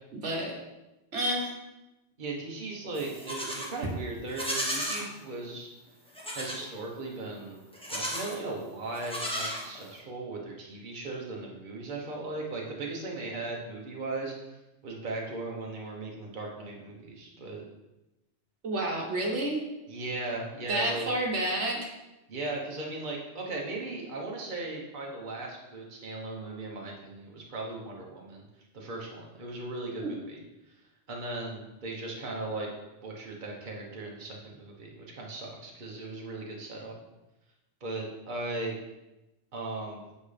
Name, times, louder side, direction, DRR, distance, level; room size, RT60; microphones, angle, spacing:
voice 1, 1.1-1.5 18.6-19.6 20.7-21.9 30.0-30.1, right 1 dB, 90° right, -1 dB, 1.6 m, -29 dB
voice 2, 2.2-5.7 6.3-7.6 7.9-14.3 14.8-17.6 19.9-21.1 22.3-28.4 28.7-30.4 31.1-32.7 33.0-37.0 37.8-38.8 39.5-40.0, right 2 dB, 45° right, -1 dB, 1.2 m, -37 dB
Livestock farm animals working animals, 2.9-3.7 4.3-5.1 6.1-6.6 7.7-8.4 8.9-10.0, equal, 5° left, 1.1 m, -34 dB
7.8 x 5.4 x 3.3 m, 0.98 s
omnidirectional pair, 1.2 m